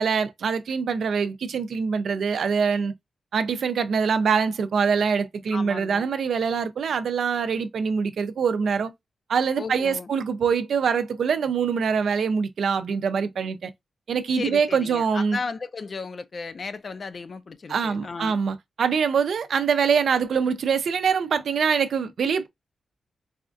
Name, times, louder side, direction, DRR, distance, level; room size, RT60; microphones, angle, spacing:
voice 1, 0.0-2.9 3.3-8.9 9.3-13.7 14.1-15.4 17.7-22.5, right 6 dB, 80° right, 0.5 m, -24 dB
voice 2, 5.5-6.1 9.6-10.1 14.3-18.4, left 4 dB, 50° left, 0.4 m, -35 dB
4.1 x 2.3 x 2.5 m
cardioid pair, 85°, 0 cm